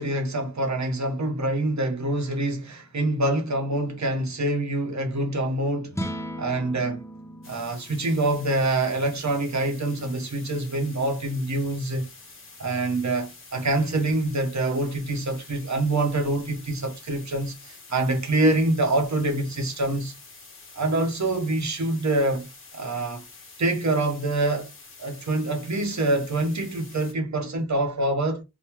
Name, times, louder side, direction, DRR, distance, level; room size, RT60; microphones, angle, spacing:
voice 1, 0.0-6.0 6.4-7.0 7.5-12.1 12.6-17.5 17.9-20.1 20.7-22.5 22.7-23.2 23.6-24.7 25.0-28.4, right 2 dB, 50° right, 0.9 m, -25 dB
sound 1, 5.9-12.3, equal, 10° left, 0.5 m, -40 dB
sound 2, 7.4-27.1, left 3 dB, 35° left, 1.0 m, -47 dB
3.0 x 2.2 x 3.5 m
wide cardioid pair, 70°, 37 cm